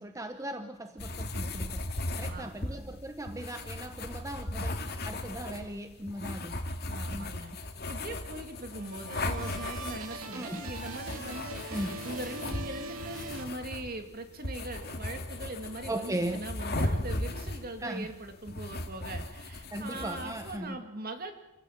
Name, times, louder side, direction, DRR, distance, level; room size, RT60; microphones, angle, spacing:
voice 1, 0.0-1.9 2.2-6.6 7.1-7.4 10.3-10.6 11.7-12.0 15.9-16.4 17.8-18.1 19.7-20.8, right 1 dB, 15° right, 8 dB, 0.9 m, -38 dB
sound 1, 1.0-20.6, left 1 dB, 50° left, 2.2 m, -37 dB
voice 2, 2.2-2.9 6.9-7.5 7.9-21.3, right 1 dB, 45° right, 6 dB, 2.5 m, -41 dB
sound 2, 8.5-14.1, right 2 dB, 90° right, 2.5 m, -42 dB
28.0 x 16.0 x 7.5 m, 1.0 s
head